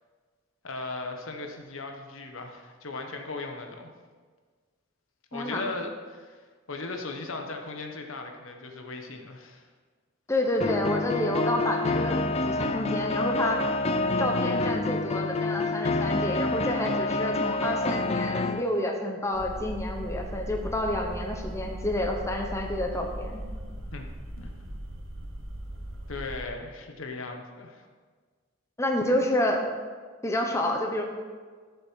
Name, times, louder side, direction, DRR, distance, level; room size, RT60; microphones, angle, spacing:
voice 1, 0.6-3.9 5.3-9.7 23.9-24.1 24.4-24.5 26.1-27.9, left 3 dB, 85° left, 4 dB, 1.2 m, -37 dB
voice 2, 5.3-5.6 10.3-12.2 12.5-13.6 14.2-23.4 28.8-29.7 30.2-31.0, left 1 dB, 15° left, 2 dB, 1.0 m, -29 dB
sound 1, 10.6-18.6, left 2 dB, 30° left, 0.4 m, -27 dB
sound 2, 19.3-26.5, right 1 dB, 80° right, 1.3 m, -38 dB
13.5 x 6.9 x 4.6 m, 1.5 s
head